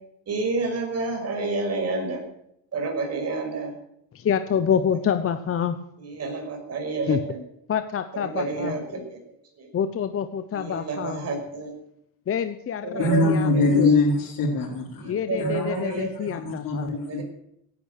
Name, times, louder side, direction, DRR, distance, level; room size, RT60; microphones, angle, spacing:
voice 1, 0.3-2.2 2.7-3.7 6.0-7.4 8.1-8.8 9.6-9.7 10.5-11.7 12.8-13.3 13.5-13.8 15.0-16.3 16.8-17.2, right 3 dB, 40° right, 3 dB, 6.0 m, -29 dB
voice 2, 4.1-5.8 7.1-7.2 7.7-8.8 9.7-11.3 12.3-14.0 15.1-16.9, left 8 dB, 35° left, 10 dB, 0.9 m, -27 dB
voice 3, 13.0-15.1 15.4-17.2, left 2 dB, 55° left, -4 dB, 4.7 m, -23 dB
17.0 x 11.5 x 6.6 m, 0.76 s
cardioid pair, 135°, 39 cm